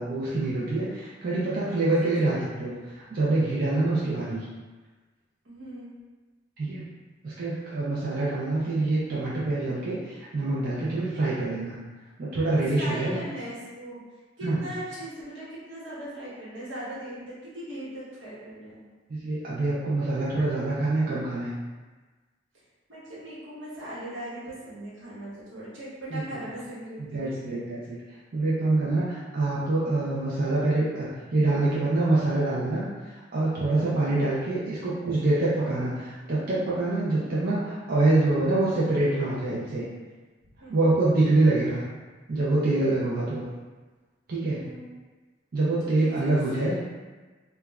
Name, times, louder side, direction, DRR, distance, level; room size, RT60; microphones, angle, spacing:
voice 1, 0.0-4.5 6.6-6.8 7.2-11.8 12.2-13.2 14.4-14.6 19.1-21.5 26.1-26.2 27.0-28.0 28.3-39.8 40.7-41.8 42.3-43.4 44.3-44.7 45.5-46.8, right 2 dB, 50° right, -8 dB, 0.4 m, -25 dB
voice 2, 2.0-2.4 5.4-5.9 12.7-14.0 14.4-18.8 22.9-27.3 34.0-34.2 40.6-40.8 42.8-43.1 44.6-44.9 46.0-46.7, right 1 dB, 85° right, -9 dB, 1.0 m, -39 dB
3.0 x 2.2 x 2.3 m, 1.3 s
head